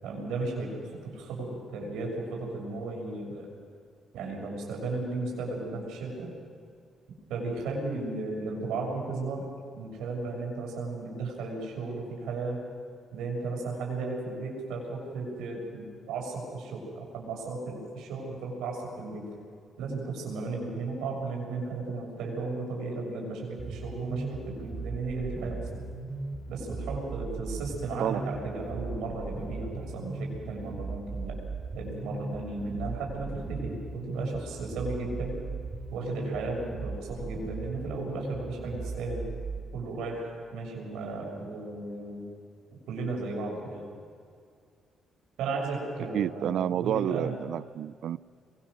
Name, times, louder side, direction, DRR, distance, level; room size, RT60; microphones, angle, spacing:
voice 1, 0.0-3.5 4.1-6.3 7.3-9.4 9.7-12.6 13.1-19.2 19.8-25.8 26.5-31.4 31.7-35.4 35.9-39.2 39.7-42.3 42.9-43.8 45.4-47.3, right 3 dB, 90° right, -1 dB, 6.7 m, -35 dB
sound 1, 23.6-39.6, right 3 dB, 40° right, 4.3 m, -37 dB
voice 2, 46.1-48.2, right 10 dB, 75° right, 20 dB, 0.5 m, -29 dB
24.0 x 22.0 x 6.5 m, 2.2 s
cardioid pair, 90°, 0 cm